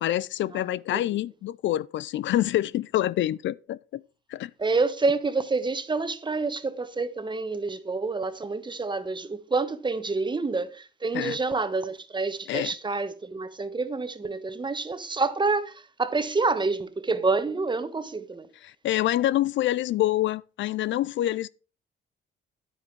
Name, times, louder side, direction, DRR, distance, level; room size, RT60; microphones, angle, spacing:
voice 1, 0.0-4.0 4.3-4.5 11.1-11.4 12.5-12.7 18.6-21.5, left 14 dB, 70° left, 0.4 m, -26 dB
voice 2, 4.6-18.5, right 3 dB, 25° right, 1.2 m, -28 dB
10.0 x 8.8 x 4.6 m
cardioid pair, 90°, 20 cm